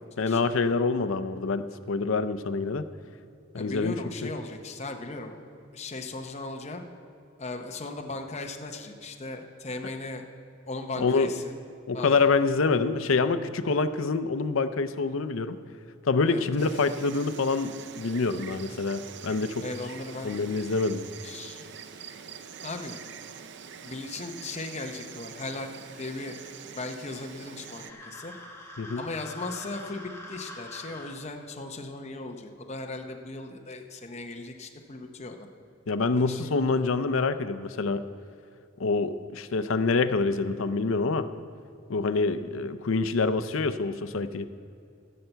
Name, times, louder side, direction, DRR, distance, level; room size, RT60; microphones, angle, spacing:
voice 1, 0.2-2.9 3.5-4.3 11.0-11.3 11.9-15.6 16.0-19.6 20.2-21.0 28.8-29.0 35.9-38.0 38.8-41.3 41.9-44.5, left 4 dB, 70° left, 12 dB, 0.5 m, -26 dB
voice 2, 3.6-5.4 5.7-6.8 7.4-10.2 10.7-11.5 11.9-12.2 16.3-16.7 19.6-20.6 21.2-21.6 22.6-23.0 23.8-25.7 26.0-26.4 26.7-28.3 28.9-35.5 36.1-36.5, left 2 dB, 30° left, 4 dB, 0.8 m, -37 dB
Insect, 16.6-27.9, right 7 dB, 55° right, 0.5 m, -45 dB
sound 1, 27.7-31.2, left 1 dB, 15° left, 1.2 m, -44 dB
15.0 x 5.6 x 7.9 m, 2.5 s
head